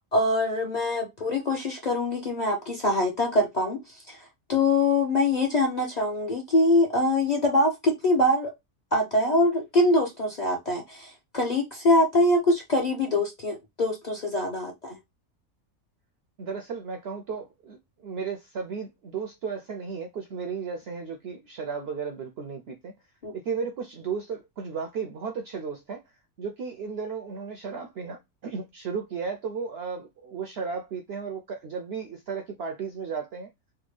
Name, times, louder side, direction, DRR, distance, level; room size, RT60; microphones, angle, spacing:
voice 1, 0.1-3.8 4.1-4.2 4.5-8.5 8.9-15.0 23.2-23.3, left 1 dB, 40° left, 0.6 m, -24 dB
voice 2, 16.4-22.9 23.3-26.0 26.4-33.5, right 5 dB, 65° right, 0.6 m, -34 dB
3.4 x 2.2 x 3.1 m
omnidirectional pair, 1.5 m